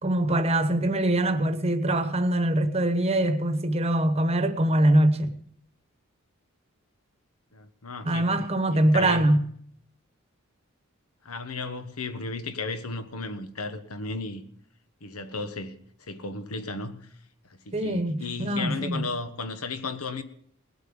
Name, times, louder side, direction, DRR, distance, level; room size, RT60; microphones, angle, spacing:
voice 1, 0.0-5.4 8.0-9.5 17.7-19.0, right 1 dB, 30° right, 1.1 m, -23 dB
voice 2, 7.5-9.4 11.2-14.4 15.0-15.8 16.1-17.1 17.4-20.2, left 3 dB, 90° left, 1.2 m, -35 dB
19.5 x 8.3 x 5.3 m
head